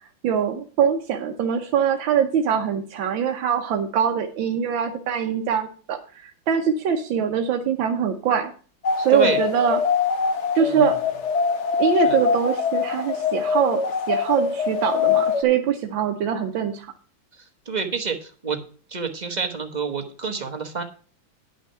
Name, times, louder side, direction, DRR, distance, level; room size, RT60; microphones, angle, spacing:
voice 1, 0.2-8.5 9.0-9.8 10.6-11.0 11.8-13.8 14.1-16.9, right 8 dB, 90° right, 4 dB, 1.6 m, -23 dB
sound 1, 8.8-15.4, left 6 dB, 50° left, 0.9 m, -23 dB
voice 2, 17.7-18.6 18.9-20.8, right 5 dB, 30° right, 4 dB, 1.0 m, -28 dB
10.5 x 6.1 x 5.6 m, 0.40 s
omnidirectional pair, 2.1 m